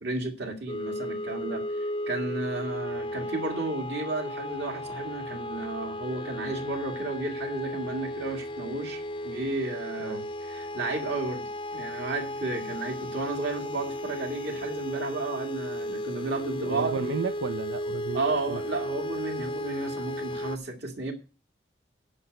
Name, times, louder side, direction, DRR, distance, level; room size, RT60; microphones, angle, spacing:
voice 1, 0.0-10.2 10.5-17.0 18.1-21.1, right 2 dB, 65° right, 2.0 m, -33 dB
sound 1, 0.7-20.6, left 1 dB, 25° left, 0.5 m, -35 dB
voice 2, 16.7-18.2 18.5-18.6, right 5 dB, 85° right, 0.6 m, -32 dB
10.0 x 5.2 x 7.9 m
head